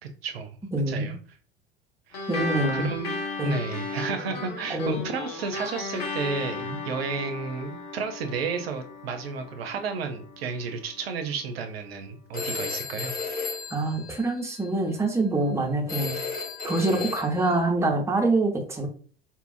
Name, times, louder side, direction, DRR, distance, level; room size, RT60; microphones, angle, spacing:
voice 1, 0.0-0.6 0.9-1.1 2.1-2.2 2.7-3.2 3.4-13.1, right 5 dB, 75° right, 6 dB, 0.5 m, -32 dB
voice 2, 0.7-1.2 2.3-2.9 3.4-3.6 4.7-5.0 6.6-6.8 13.7-16.1 16.6-18.9, right 2 dB, 10° right, 1 dB, 0.7 m, -25 dB
sound 1, 2.1-11.0, left 3 dB, 75° left, 0.8 m, -35 dB
Telephone, 12.3-14.7 15.9-17.6, left 4 dB, 30° left, 1.2 m, -34 dB
2.7 x 2.3 x 2.4 m, 0.42 s
figure-of-eight pair, 70°, 30 cm